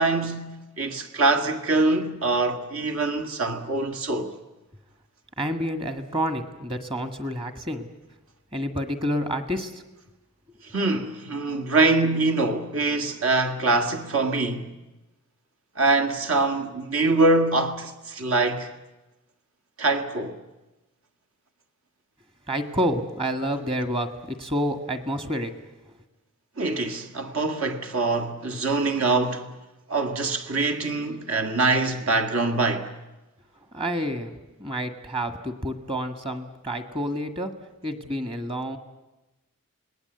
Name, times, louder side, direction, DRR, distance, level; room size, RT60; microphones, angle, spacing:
voice 1, 0.0-4.4 10.7-14.7 15.8-18.7 19.8-20.4 26.6-29.5 29.9-32.9, right 3 dB, 65° right, 1.8 m, -24 dB
voice 2, 5.4-7.9 8.5-9.8 22.5-25.5 25.8-26.0 33.7-37.5 37.8-38.8, equal, 25° right, 1.7 m, -29 dB
28.0 x 19.5 x 8.0 m
head